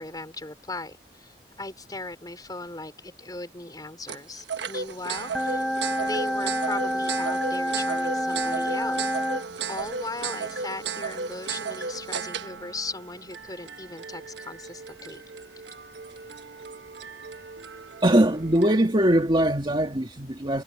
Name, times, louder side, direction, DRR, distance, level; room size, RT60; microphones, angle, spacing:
voice 1, 0.0-5.6 6.0-9.2 9.7-15.2, left 2 dB, 20° left, 4.6 m, -38 dB
sound 1, 4.1-18.9, right 5 dB, 70° right, 1.2 m, -35 dB
sound 2, 5.3-9.4, equal, ahead, 3.9 m, -28 dB
voice 2, 18.0-20.6, right 1 dB, 25° right, 2.0 m, -21 dB
head